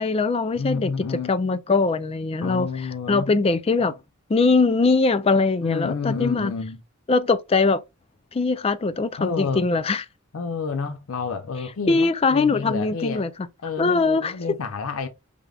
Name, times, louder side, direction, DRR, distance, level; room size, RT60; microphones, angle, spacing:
voice 1, 0.0-4.0 4.3-6.5 7.1-7.8 8.3-10.0 11.9-13.3 13.8-14.3, left 3 dB, 30° left, 0.3 m, -21 dB
voice 2, 0.6-1.3 2.4-3.3 5.6-6.8 9.2-9.6 10.3-13.3 13.6-15.1, left 5 dB, 80° left, 0.5 m, -29 dB
5.0 x 3.3 x 2.3 m
head